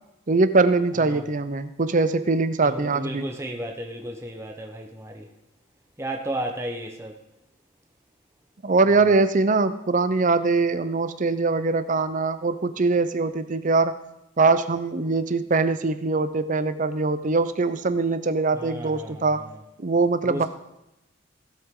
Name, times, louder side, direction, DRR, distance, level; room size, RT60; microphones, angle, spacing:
voice 1, 0.3-3.3 8.6-14.0 14.4-19.4 19.8-20.5, right 3 dB, 40° right, 12 dB, 0.6 m, -22 dB
voice 2, 2.6-5.3 6.0-7.2 18.6-19.2 20.2-20.5, right 1 dB, 15° right, 2 dB, 0.9 m, -33 dB
16.5 x 8.0 x 3.8 m, 0.91 s
head